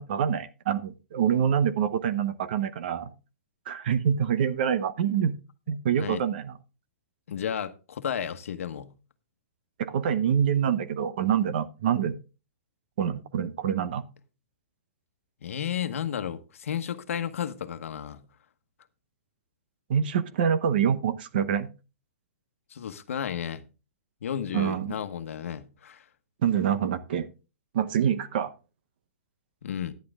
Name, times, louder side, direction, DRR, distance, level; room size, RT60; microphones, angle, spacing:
voice 1, 0.0-3.1 3.7-5.3 5.7-6.5 9.8-12.2 13.0-14.0 19.9-21.7 24.5-24.9 26.4-27.3 27.7-28.5, right 8 dB, 40° right, 0.9 m, -26 dB
voice 2, 7.3-8.9 15.4-18.2 22.7-23.6 24.2-26.0 29.6-29.9, left 9 dB, 65° left, 1.2 m, -33 dB
10.5 x 10.0 x 3.6 m
hypercardioid pair, 180°, 8 cm